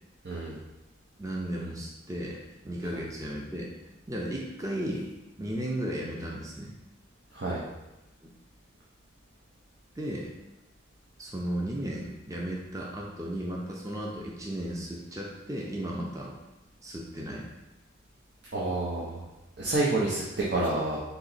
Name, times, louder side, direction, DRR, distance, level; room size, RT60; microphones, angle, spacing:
voice 1, 0.2-0.6 7.3-7.6 18.5-19.2 19.6-21.0, right 2 dB, 65° right, -6 dB, 0.7 m, -28 dB
voice 2, 1.2-2.4 2.6-3.7 4.1-5.1 5.4-6.7 8.2-8.3 10.0-10.3 11.2-16.3 16.8-17.5, right 1 dB, 15° right, -2 dB, 0.5 m, -35 dB
4.0 x 2.9 x 4.0 m, 1.0 s
head